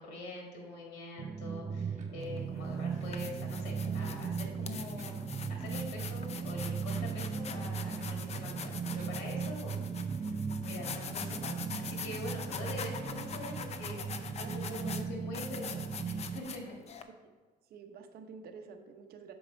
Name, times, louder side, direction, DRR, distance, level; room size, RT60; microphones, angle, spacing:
voice 1, 0.0-9.8 10.1-16.6, left 2 dB, 85° left, 0 dB, 1.9 m, -44 dB
sound 1, 1.2-16.4, right 6 dB, 25° right, 0.5 m, -37 dB
sound 2, 2.0-2.1 3.0-3.1 4.0-4.1 5.0-5.2 6.0-6.1 7.0-7.2 8.0-8.1 9.0-9.1 10.0-10.1 11.0-11.1 12.0-12.1, right 5 dB, 45° right, 1.4 m, -60 dB
sound 3, 2.2-2.4 2.9-17.0, left 6 dB, 40° left, 0.6 m, -44 dB
voice 2, 14.4-15.2 17.7-19.3, right 5 dB, 65° right, 7 dB, 0.8 m, -49 dB
7.0 x 4.8 x 5.2 m, 1.4 s
cardioid pair, 110°, 17 cm